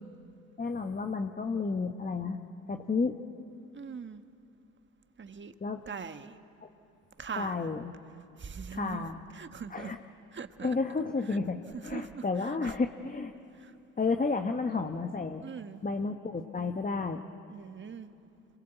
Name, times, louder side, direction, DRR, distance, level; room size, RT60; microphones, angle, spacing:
voice 1, 0.6-2.4 2.7-3.2 5.6-5.8 6.6-6.7 7.4-7.9 8.7-9.2 9.7-10.0 10.6-11.6 11.8-13.3 14.0-15.4 15.8-17.3, left 4 dB, 20° left, 6 dB, 1.3 m, -31 dB
voice 2, 3.7-4.2 5.2-5.5 5.9-6.4 7.2-7.7 8.4-9.1 9.3-9.9 10.3-10.8 11.2-11.4 11.7-12.8 13.5-13.8 15.4-15.8 17.5-18.1, right 6 dB, 30° right, 9 dB, 1.4 m, -42 dB
26.5 x 22.5 x 8.2 m, 2.7 s
hypercardioid pair, 60°, 37 cm